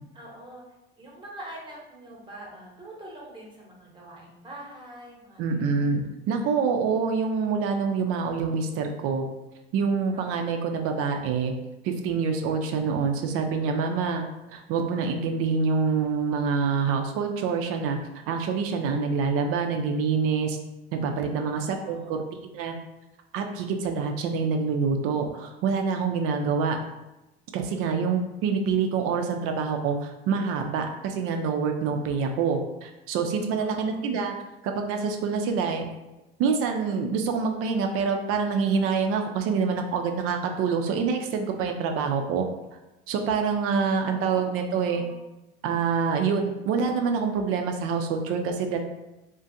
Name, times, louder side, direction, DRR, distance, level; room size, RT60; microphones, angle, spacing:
voice 1, 0.1-0.6 1.0-5.8 10.1-10.5 21.3-22.2 33.5-34.1 43.8-45.2, right 1 dB, 15° right, -3 dB, 0.9 m, -45 dB
voice 2, 5.4-9.2 9.7-11.5 11.8-14.2 14.5-18.0 18.3-20.6 20.9-22.7 23.3-26.8 27.5-34.3 34.6-35.9 36.4-42.5 43.1-45.0 45.6-48.8, right 5 dB, 50° right, 4 dB, 0.4 m, -26 dB
2.4 x 2.2 x 2.6 m, 0.98 s
hypercardioid pair, 70°, 31 cm